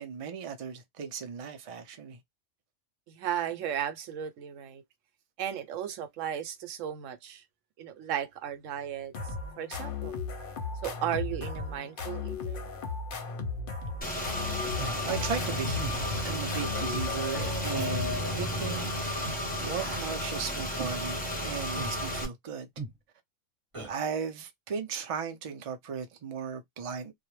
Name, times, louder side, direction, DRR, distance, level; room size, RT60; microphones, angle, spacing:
voice 1, 0.0-2.2 15.0-15.9 16.2-19.3 19.6-22.7 23.9-27.1, right 6 dB, 50° right, 0.4 m, -36 dB
voice 2, 3.1-4.8 5.4-7.4 7.8-10.2 10.8-12.7 19.3-19.5, right 9 dB, 80° right, 0.9 m, -35 dB
sound 1, 9.1-18.7, left 4 dB, 55° left, 0.7 m, -36 dB
Car / Engine, 14.0-22.3, left 1 dB, 10° left, 0.6 m, -33 dB
Human voice, 14.8-15.0 15.8-16.0 16.7-16.9 17.7-17.9 18.7-18.9 19.8-20.1 20.8-21.0 21.8-22.0 22.8-23.0 23.7-23.9, right 2 dB, 30° right, 0.9 m, -39 dB
2.3 x 2.0 x 3.0 m
omnidirectional pair, 1.3 m